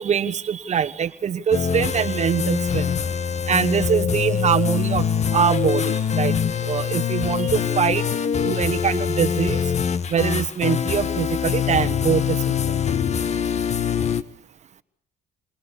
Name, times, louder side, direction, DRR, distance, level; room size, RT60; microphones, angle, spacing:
voice 1, 0.0-2.9 3.5-6.3 6.6-8.1 8.4-9.6 10.1-12.8, right 8 dB, 45° right, 12 dB, 1.4 m, -23 dB
sound 1, 1.5-14.2, left 7 dB, 40° left, 1.6 m, -24 dB
29.5 x 28.0 x 7.0 m, 0.72 s
cardioid pair, 110°, 17 cm